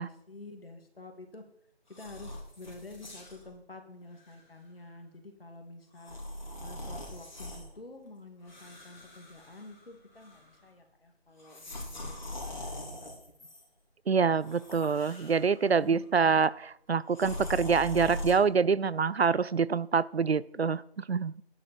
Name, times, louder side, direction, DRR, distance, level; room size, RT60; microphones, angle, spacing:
voice 1, 0.0-1.4 1.9-6.2 6.6-13.1 15.6-16.0, left 2 dB, 60° left, 4 dB, 2.7 m, -49 dB
sound 1, 1.9-3.5 4.1-4.3 6.0-7.7 8.4-9.9 10.2-10.6 11.4-13.6 14.4-15.7 17.1-18.3, left 1 dB, 45° left, 3.9 m, -42 dB
voice 2, 14.1-21.3, right 5 dB, 70° right, 20 dB, 0.6 m, -26 dB
12.5 x 11.0 x 4.5 m, 0.71 s
figure-of-eight pair, 180°, 32 cm